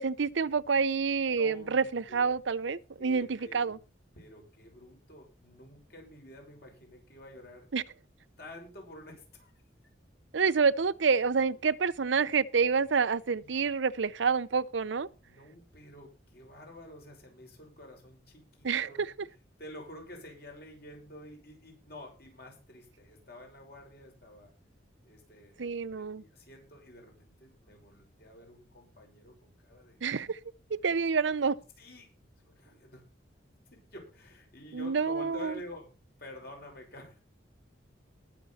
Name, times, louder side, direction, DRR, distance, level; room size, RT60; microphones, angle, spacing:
voice 1, 0.0-3.8 7.7-7.8 10.3-15.1 18.6-19.1 25.6-26.2 30.0-30.4 30.7-31.6 34.7-35.6, right 5 dB, 75° right, 0.6 m, -28 dB
voice 2, 1.4-2.4 3.0-3.8 4.1-7.7 8.4-9.5 13.4-13.6 15.2-19.0 19.6-24.5 25.0-30.0 31.8-32.1 32.4-33.0 33.7-35.9 36.2-37.2, left 1 dB, 55° left, 6.3 m, -49 dB
20.0 x 6.9 x 4.2 m
head